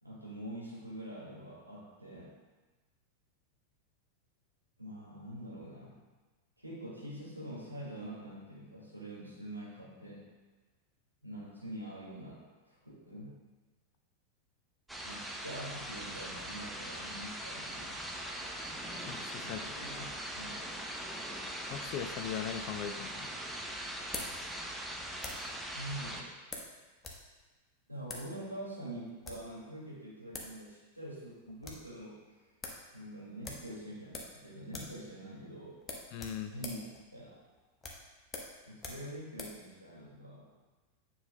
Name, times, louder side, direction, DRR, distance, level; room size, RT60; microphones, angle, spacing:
voice 1, 0.0-2.3 4.8-6.0 6.6-10.3 11.2-13.4 15.0-18.0 19.4-20.7 25.7-26.3 27.9-32.5 32.9-35.8 36.5-36.8 37.1-37.4 38.7-40.6, right 1 dB, 85° right, -6 dB, 2.1 m, -45 dB
sound 1, 14.9-26.2, right 1 dB, 5° right, 0.7 m, -41 dB
voice 2, 19.0-19.6 21.7-23.3 36.1-36.5, left 9 dB, 45° left, 8 dB, 0.5 m, -39 dB
sound 2, 22.7-25.6 26.5-27.3 27.5-27.6 28.0-28.3 29.0-29.5 30.1-30.2 30.3-30.6 30.9-31.0 31.3-31.9 32.2-32.3 32.6-32.8 33.4-34.4 34.7-35.0 35.3-35.4 35.8-39.6, left 3 dB, 20° left, 1.1 m, -45 dB
9.5 x 5.5 x 2.2 m, 1.2 s
figure-of-eight pair, 90°, 0 cm